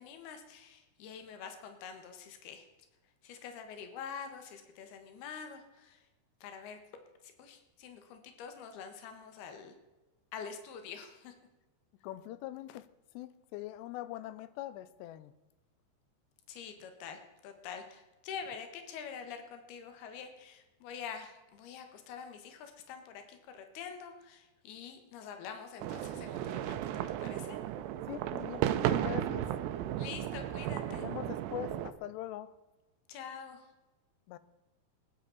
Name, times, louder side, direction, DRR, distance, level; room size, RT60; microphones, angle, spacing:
voice 1, 0.0-2.7 3.2-6.1 6.4-6.8 7.2-9.8 10.3-11.4 16.5-26.8 27.2-27.6 30.0-31.1 33.1-33.7, left 7 dB, 70° left, 3.4 m, -46 dB
voice 2, 12.0-12.9 13.1-15.3 28.1-29.5 30.9-32.5 34.3-34.4, left 14 dB, 85° left, 2.9 m, -42 dB
sound 1, 25.8-31.9, right 12 dB, 85° right, 2.8 m, -34 dB
20.0 x 10.5 x 4.1 m
omnidirectional pair, 4.8 m